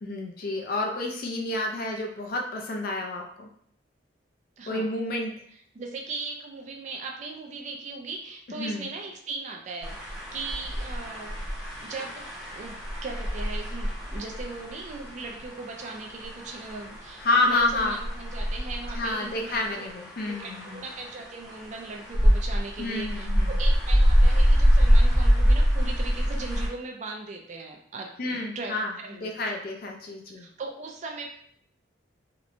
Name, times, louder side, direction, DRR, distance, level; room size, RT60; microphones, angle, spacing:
voice 1, 0.0-3.5 4.7-5.3 8.6-8.9 17.2-18.0 19.0-20.8 22.8-23.6 28.2-30.5, left 2 dB, 50° left, 1 dB, 0.4 m, -29 dB
voice 2, 4.6-4.9 5.7-10.0 10.3-11.4 11.8-19.6 20.3-29.3 30.3-31.3, right 3 dB, 40° right, 1 dB, 0.3 m, -38 dB
sound 1, 9.8-26.7, equal, 5° right, 0.7 m, -25 dB
2.8 x 2.1 x 2.5 m, 0.66 s
head